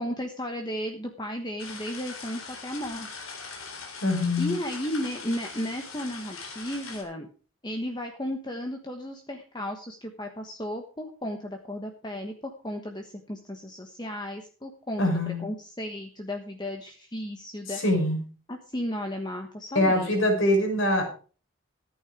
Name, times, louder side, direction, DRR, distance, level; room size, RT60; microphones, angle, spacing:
voice 1, 0.0-3.3 4.4-7.3 7.6-17.8 18.5-20.2, equal, 20° left, 3 dB, 1.2 m, -34 dB
sound 1, 1.6-7.0, left 4 dB, 90° left, 3.8 m, -41 dB
voice 2, 4.0-4.5 15.0-15.4 17.7-18.2 19.7-21.0, left 1 dB, 65° left, 3 dB, 5.5 m, -23 dB
14.5 x 9.0 x 4.9 m, 0.38 s
head